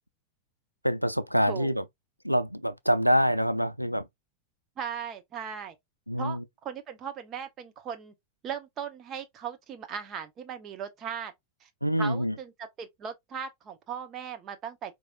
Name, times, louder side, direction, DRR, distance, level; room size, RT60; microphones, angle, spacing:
voice 1, 0.8-1.8 2.2-4.1 6.1-6.4 11.8-12.3, equal, 90° left, 0.3 m, -26 dB
voice 2, 4.8-5.7 6.2-8.1 8.4-11.3 11.6-11.7 12.0-14.9, right 7 dB, 30° right, 1.0 m, -38 dB
5.0 x 3.0 x 2.5 m
figure-of-eight pair, 90°, 0 cm